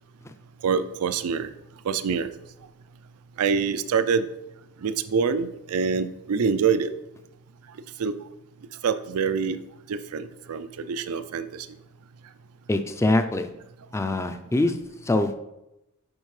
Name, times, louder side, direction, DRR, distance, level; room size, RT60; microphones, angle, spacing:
voice 1, 0.6-1.5 1.8-2.3 3.4-4.3 4.8-6.9 8.0-8.2 8.8-9.6 9.9-11.7, right 6 dB, 85° right, 12 dB, 0.4 m, -25 dB
voice 2, 12.7-13.5 13.9-14.8 15.0-15.4, left 2 dB, 15° left, 8 dB, 0.3 m, -23 dB
10.5 x 4.4 x 3.2 m, 0.91 s
head